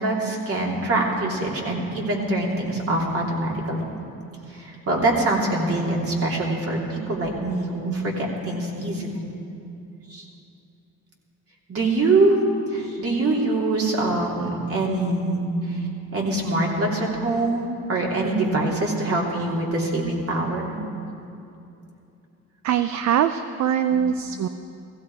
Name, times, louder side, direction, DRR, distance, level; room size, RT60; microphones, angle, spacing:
voice 1, 0.0-3.9 4.5-9.2 10.1-10.2 11.7-12.4 12.7-15.9 16.1-20.8 23.9-24.0, right 2 dB, 50° right, -2 dB, 3.2 m, -24 dB
voice 2, 22.6-24.5, right 9 dB, 65° right, 10 dB, 0.6 m, -22 dB
16.5 x 16.0 x 4.8 m, 2.7 s
cardioid pair, 90°, 30 cm